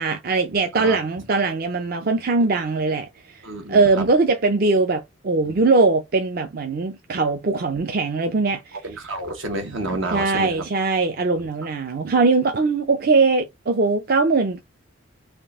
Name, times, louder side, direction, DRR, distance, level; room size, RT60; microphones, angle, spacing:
voice 1, 0.0-3.1 3.7-8.8 10.1-14.6, right 3 dB, 50° right, 0.5 m, -21 dB
voice 2, 3.4-4.0 8.8-10.6 11.4-11.5, right 2 dB, 85° right, 1.3 m, -29 dB
3.6 x 2.5 x 3.6 m
head